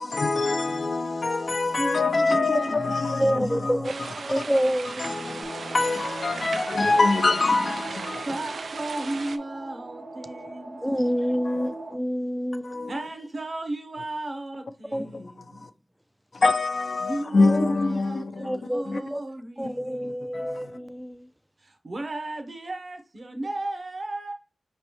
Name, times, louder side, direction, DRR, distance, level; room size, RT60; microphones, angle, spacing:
voice 1, 0.0-4.1 4.3-4.4 5.0-8.4 11.4-11.7 12.6-13.1 14.9-15.7 16.3-18.6 18.9-19.0 19.8-20.8, left 3 dB, 55° left, 0.5 m, -25 dB
voice 2, 1.8-4.5 8.2-10.8 12.9-15.7 17.0-20.6 21.6-24.3, right 2 dB, 50° right, 0.9 m, -35 dB
voice 3, 3.1-3.9 4.3-5.4 10.8-12.9 14.9-15.1 17.5-17.7 18.4-19.2 19.6-21.3, equal, 5° right, 0.4 m, -28 dB
sound 1, 3.8-9.4, right 4 dB, 80° right, 0.4 m, -37 dB
sound 2, 5.4-11.9, right 2 dB, 65° right, 1.2 m, -40 dB
5.2 x 3.2 x 3.0 m
wide cardioid pair, 80°, 0 cm